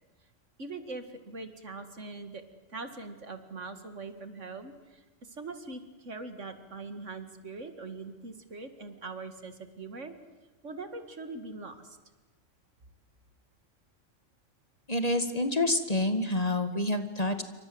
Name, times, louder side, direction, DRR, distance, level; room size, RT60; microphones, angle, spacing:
voice 1, 0.6-2.4 2.7-10.1 10.6-12.0, right 3 dB, 65° right, 9 dB, 2.5 m, -42 dB
voice 2, 14.9-17.4, left 1 dB, 30° left, 8 dB, 2.0 m, -28 dB
28.0 x 25.5 x 7.9 m, 1.2 s
omnidirectional pair, 1.3 m